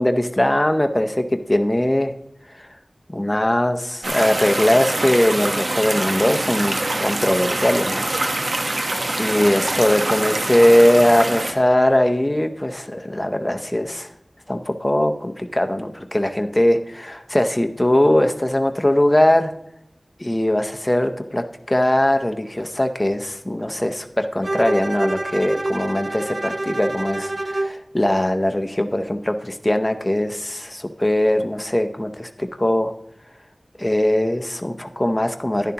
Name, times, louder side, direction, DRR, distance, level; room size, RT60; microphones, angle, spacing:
voice 1, 0.0-2.1 2.5-2.7 3.1-8.1 9.2-14.1 14.5-19.5 20.2-32.9 33.8-35.7, left 1 dB, 20° left, 6 dB, 0.7 m, -20 dB
sound 1, 4.0-11.5, right 2 dB, 75° right, 1.1 m, -24 dB
Bowed string instrument, 24.4-27.8, right 2 dB, 45° right, 0.4 m, -26 dB
10.5 x 10.5 x 2.9 m, 0.78 s
wide cardioid pair, 60°, 0 cm